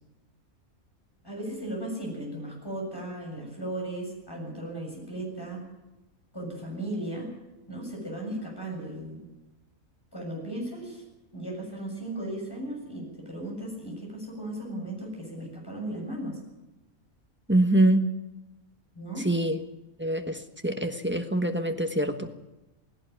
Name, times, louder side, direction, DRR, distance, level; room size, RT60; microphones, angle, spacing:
voice 1, 1.2-5.6 6.3-7.3 7.7-9.2 10.1-11.0 11.3-16.4 18.9-19.3, right 1 dB, 15° left, -1 dB, 7.1 m, -36 dB
voice 2, 17.5-18.0 19.2-19.6 20.0-22.3, right 1 dB, 10° right, 5 dB, 1.2 m, -24 dB
17.5 x 16.5 x 9.3 m, 1.0 s
omnidirectional pair, 1.5 m